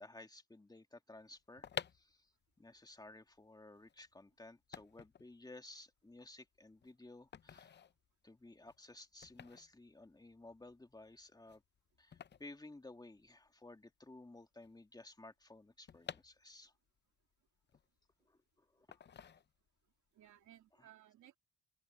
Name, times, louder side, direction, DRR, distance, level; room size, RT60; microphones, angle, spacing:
voice 1, 0.0-2.3 2.6-7.8 8.2-11.6 12.0-16.7 18.2-19.0 20.8-20.9, left 2 dB, 15° left, 2.3 m, -56 dB
sound 1, 1.4-13.5 13.8-13.9 14.0-16.9 17.3-18.4 18.9-19.9 20.3-20.5, left 8 dB, 35° left, 0.7 m, -52 dB
voice 2, 19.8-21.4, right 12 dB, 70° right, 3.0 m, -62 dB
open air
cardioid pair, 90°, 30 cm